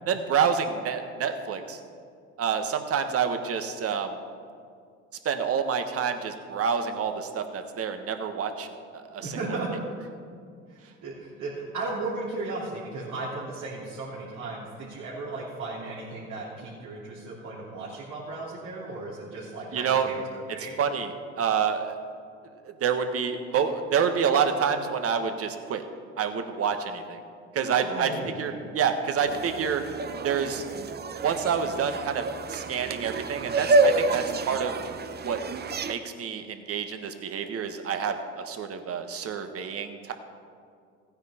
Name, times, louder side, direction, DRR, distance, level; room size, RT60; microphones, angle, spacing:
voice 1, 0.1-1.8 2.4-4.2 5.2-9.4 19.7-20.1 20.8-21.9 22.8-25.8 26.2-27.2 27.5-28.1 28.4-29.8 30.2-30.6 31.2-34.7 35.2-35.4 35.9-40.1, right 7 dB, 50° right, 7 dB, 1.3 m, -28 dB
voice 2, 9.2-9.7 10.7-20.8 27.5-28.6, right 3 dB, 70° right, -8 dB, 3.2 m, -35 dB
sound 1, 29.3-35.9, right 3 dB, 30° right, 0.8 m, -28 dB
15.5 x 9.7 x 4.3 m, 2.3 s
supercardioid pair, 70°, 31 cm